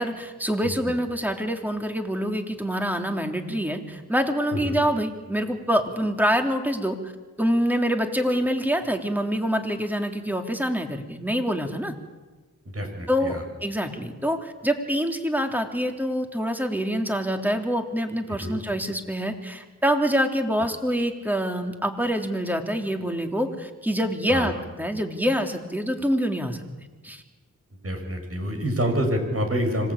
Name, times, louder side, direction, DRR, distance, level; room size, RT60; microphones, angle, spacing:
voice 1, 0.0-7.0 7.4-11.9 13.1-26.6 27.0-27.2, equal, 5° right, 4 dB, 3.4 m, -26 dB
voice 2, 0.6-1.0 4.5-4.8 12.6-13.4 18.3-18.6 24.3-24.5 27.8-29.9, equal, 45° right, 4 dB, 6.5 m, -27 dB
26.0 x 18.5 x 8.7 m, 1.3 s
cardioid pair, 45°, 32 cm